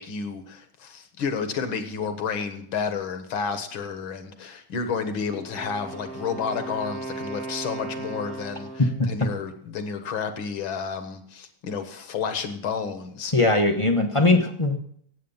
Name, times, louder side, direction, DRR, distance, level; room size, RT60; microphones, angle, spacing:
voice 1, 0.0-13.3, left 6 dB, 70° left, 8 dB, 2.1 m, -31 dB
Wind instrument woodwind instrument, 5.3-9.1, right 3 dB, 30° right, 1.3 m, -36 dB
voice 2, 13.3-14.8, left 2 dB, 25° left, 4 dB, 0.6 m, -20 dB
17.0 x 8.1 x 5.5 m, 0.65 s
omnidirectional pair, 2.3 m